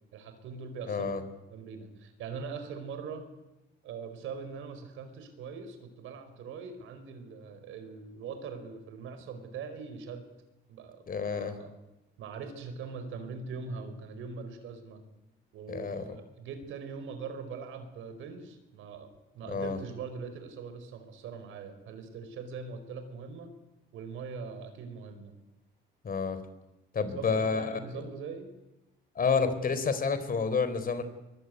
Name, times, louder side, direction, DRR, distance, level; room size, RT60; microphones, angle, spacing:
voice 1, 0.1-1.0 1.5-3.2 3.8-10.2 10.7-11.7 12.2-15.0 15.5-19.1 19.3-23.5 23.9-25.3 27.0-28.5, right 5 dB, 85° right, 9 dB, 5.0 m, -42 dB
voice 2, 0.9-1.2 11.1-11.6 15.7-16.0 19.5-19.8 26.0-26.4 26.9-28.0 29.2-31.0, left 5 dB, 45° left, 12 dB, 3.9 m, -29 dB
23.5 x 22.5 x 9.5 m, 0.94 s
cardioid pair, 90°, 20 cm